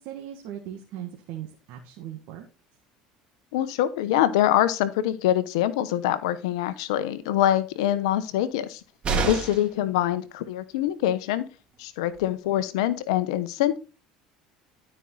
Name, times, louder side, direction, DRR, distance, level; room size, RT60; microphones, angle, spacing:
voice 1, 0.0-2.5, right 11 dB, 65° right, 3 dB, 1.6 m, -38 dB
voice 2, 3.5-8.8 9.2-11.5 11.8-13.8, left 12 dB, 80° left, 14 dB, 0.9 m, -24 dB
sound 1, 9.0-9.8 11.7-11.8 12.1-12.2, right 4 dB, 35° right, 3.1 m, -27 dB
12.5 x 5.4 x 3.9 m, 0.33 s
supercardioid pair, 85°, 3 cm